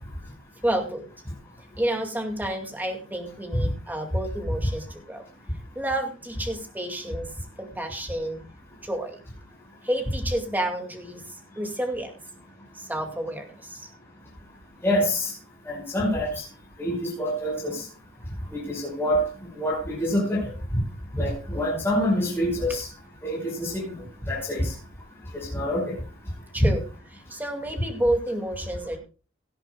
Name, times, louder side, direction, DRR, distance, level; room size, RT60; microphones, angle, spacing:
voice 1, 0.6-1.1 1.8-5.2 5.7-8.4 8.8-9.2 9.8-12.1 12.7-13.9 21.5-21.8 26.5-26.8 27.1-29.0, right 1 dB, 10° right, 3 dB, 2.3 m, -30 dB
voice 2, 14.8-15.3 15.7-16.4 16.8-17.8 18.5-19.2 19.5-20.5 21.1-22.9 23.2-23.9 24.3-24.7 25.3-26.0, equal, 10° left, -5 dB, 5.8 m, -26 dB
17.5 x 12.5 x 2.4 m, 0.34 s
head